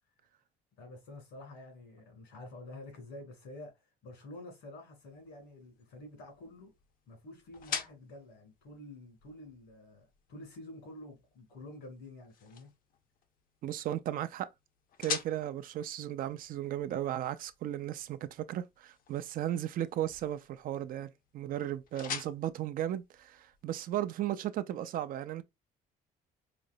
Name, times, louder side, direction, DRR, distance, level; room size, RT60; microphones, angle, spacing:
voice 1, 0.8-6.7 7.1-12.7, left 2 dB, 85° left, 2.3 m, -49 dB
sound 1, 5.0-23.8, left 7 dB, 55° left, 0.6 m, -47 dB
voice 2, 13.6-14.5 15.0-25.4, right 12 dB, 55° right, 0.4 m, -35 dB
5.0 x 2.0 x 2.6 m
cardioid pair, 110°, 17 cm